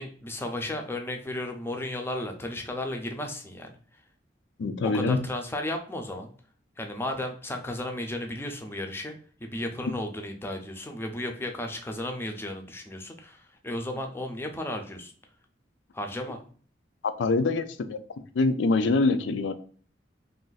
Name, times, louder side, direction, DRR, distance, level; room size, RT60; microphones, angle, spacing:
voice 1, 0.0-3.8 4.8-6.3 6.8-9.1 9.4-15.1 15.9-16.4, left 1 dB, 15° left, 3 dB, 0.5 m, -34 dB
voice 2, 4.6-5.2 17.0-18.0 18.3-19.5, left 3 dB, 85° left, 10 dB, 0.4 m, -24 dB
2.5 x 2.5 x 3.8 m, 0.44 s
head